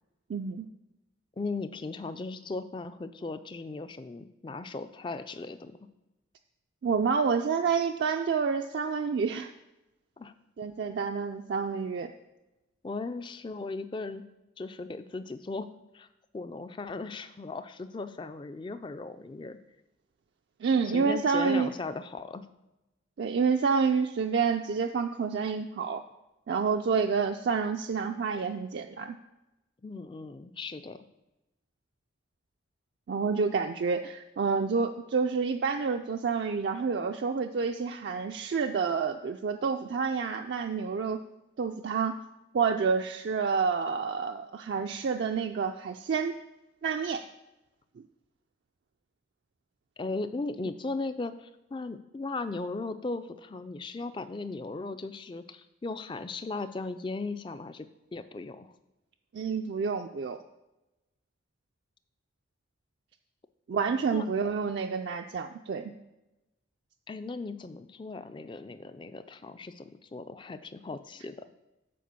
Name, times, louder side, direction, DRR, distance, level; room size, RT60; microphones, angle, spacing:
voice 1, 0.3-0.7 6.8-9.5 10.6-12.1 20.6-21.7 23.2-26.0 26.5-29.2 33.1-41.2 41.6-42.2 42.5-46.3 46.8-47.2 59.3-60.4 63.7-65.9, right 5 dB, 60° right, 5 dB, 0.3 m, -28 dB
voice 2, 1.4-5.8 10.2-10.3 12.8-14.2 14.6-15.7 15.9-16.1 16.3-19.6 20.8-22.5 29.8-31.0 50.0-58.7 64.1-64.3 67.1-71.4, left 3 dB, 25° left, 11 dB, 0.3 m, -37 dB
7.6 x 4.4 x 6.8 m, 0.97 s
head